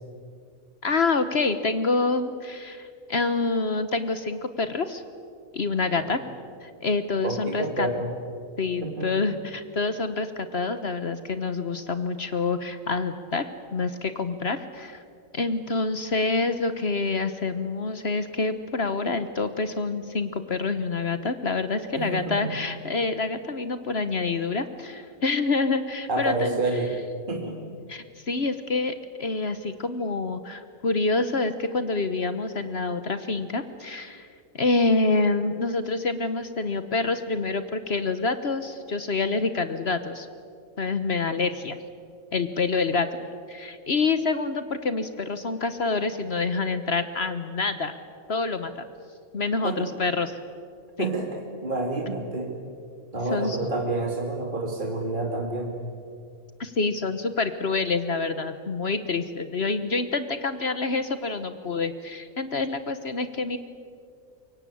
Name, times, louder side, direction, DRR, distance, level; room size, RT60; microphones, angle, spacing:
voice 1, 0.8-5.0 5.5-6.2 6.6-7.9 8.6-15.0 15.3-26.6 27.9-34.3 34.5-40.3 40.8-41.8 42.3-43.1 43.5-47.9 48.3-48.9 49.3-50.4 51.0-51.1 53.3-53.6 56.6-63.6, left 3 dB, 50° left, 11 dB, 1.3 m, -27 dB
voice 2, 7.2-8.1 8.8-9.1 22.0-22.5 26.1-26.9 27.3-27.8 49.6-49.9 51.0-52.5 53.1-55.8, right 2 dB, 35° right, 1 dB, 2.5 m, -29 dB
25.5 x 23.0 x 8.6 m, 2.2 s
omnidirectional pair, 1.5 m